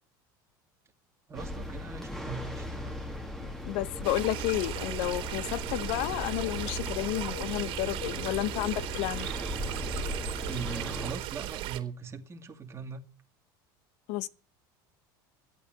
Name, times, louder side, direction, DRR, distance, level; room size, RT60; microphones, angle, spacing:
sound 1, 1.3-11.1, left 1 dB, 5° left, 1.9 m, -38 dB
voice 1, 1.3-3.0 10.4-13.0, right 6 dB, 25° right, 2.2 m, -40 dB
voice 2, 3.6-9.3 14.1-14.3, left 16 dB, 70° left, 0.8 m, -31 dB
sound 2, 4.0-11.8, right 14 dB, 55° right, 2.7 m, -37 dB
13.0 x 8.5 x 7.8 m
supercardioid pair, 105°, 11 cm